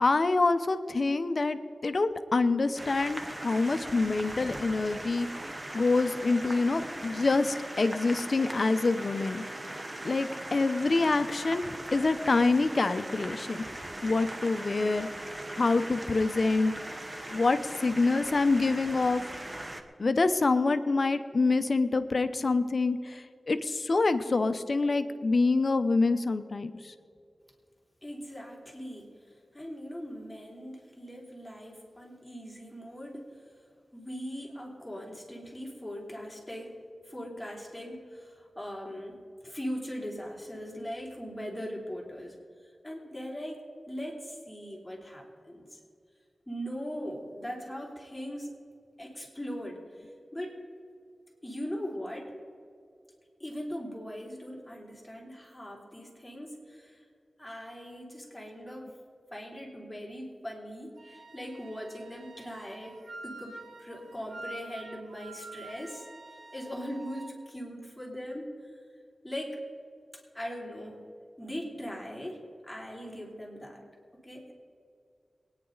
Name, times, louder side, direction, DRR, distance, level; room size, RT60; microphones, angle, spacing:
voice 1, 0.0-5.3 5.7-9.4 10.0-13.6 14.0-15.1 15.5-16.7 17.3-19.2 20.0-26.9, left 3 dB, 55° left, 10 dB, 0.8 m, -26 dB
sound 1, 2.8-19.8, right 1 dB, 30° right, 1.1 m, -40 dB
voice 2, 28.0-33.4 33.9-36.8 37.0-42.4 42.8-45.8 46.5-48.6 49.0-50.6 51.4-52.3 53.4-57.0 57.4-59.0 59.3-66.1 66.5-68.5 69.2-69.6 70.1-71.0 71.4-73.8 74.2-74.5, equal, 10° left, -2 dB, 3.5 m, -40 dB
Wind instrument woodwind instrument, 61.0-67.3, right 2 dB, 80° right, 1.4 m, -47 dB
23.0 x 9.9 x 4.0 m, 2.3 s
wide cardioid pair, 70°, 0 cm